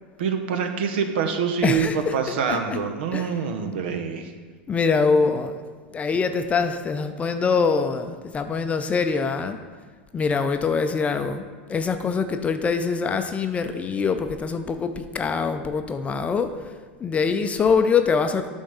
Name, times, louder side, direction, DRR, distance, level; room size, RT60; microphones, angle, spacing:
voice 1, 0.2-4.3, right 6 dB, 75° right, 7 dB, 0.8 m, -25 dB
voice 2, 1.6-2.2 2.4-2.8 3.1-3.3 4.7-5.6 5.9-9.6 10.1-11.4 11.7-18.5, left 5 dB, 25° left, 8 dB, 0.5 m, -24 dB
8.4 x 3.5 x 5.5 m, 1.4 s
hypercardioid pair, 105°, 6 cm